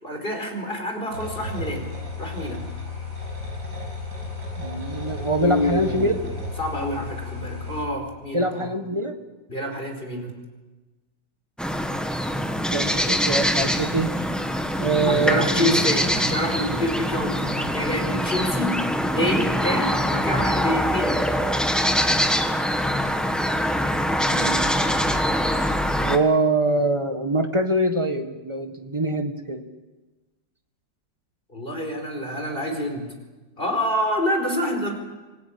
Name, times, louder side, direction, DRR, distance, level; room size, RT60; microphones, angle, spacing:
voice 1, 0.0-1.9 2.2-2.6 5.4-6.2 6.6-8.7 9.5-10.3 15.0-18.8 19.1-21.2 31.5-33.1 33.6-34.9, left 1 dB, 30° left, 3 dB, 4.7 m, -27 dB
sound 1, 1.1-7.9, left 3 dB, 65° right, 7.1 m, -33 dB
voice 2, 4.6-6.1 8.3-9.2 12.7-14.1 14.8-15.8 24.3-25.0 26.0-29.6, right 2 dB, 15° right, 6 dB, 1.6 m, -24 dB
sound 2, 11.6-26.2, equal, ahead, 1.1 m, -23 dB
26.0 x 18.5 x 8.8 m, 1.2 s
omnidirectional pair, 2.0 m